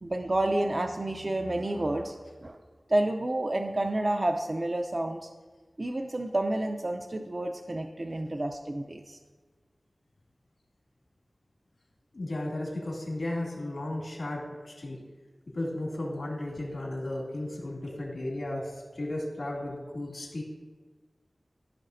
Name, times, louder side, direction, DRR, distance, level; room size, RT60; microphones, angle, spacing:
voice 1, 0.0-2.6 2.9-5.3 5.8-9.2, right 1 dB, 45° right, 5 dB, 0.5 m, -30 dB
voice 2, 12.1-15.0 15.5-20.4, left 1 dB, 85° left, -3 dB, 2.4 m, -34 dB
15.0 x 5.5 x 2.6 m, 1.4 s
wide cardioid pair, 70°, 0 cm